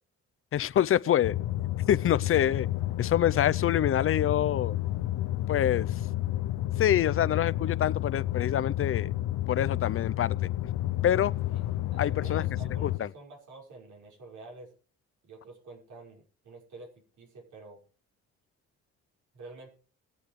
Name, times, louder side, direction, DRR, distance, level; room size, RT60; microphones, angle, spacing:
voice 1, 0.5-1.3 1.9-2.7 3.0-4.8 5.5-5.9 6.8-9.1 9.5-10.5 11.0-11.3 12.0-12.4 12.8-13.1, left 10 dB, 45° left, 0.6 m, -26 dB
sound 1, 1.2-13.0, left 14 dB, 80° left, 0.8 m, -30 dB
voice 2, 11.9-14.7 15.2-17.8 19.3-19.7, right 3 dB, 75° right, 5.9 m, -48 dB
21.5 x 8.8 x 3.3 m
cardioid pair, 90°, 30 cm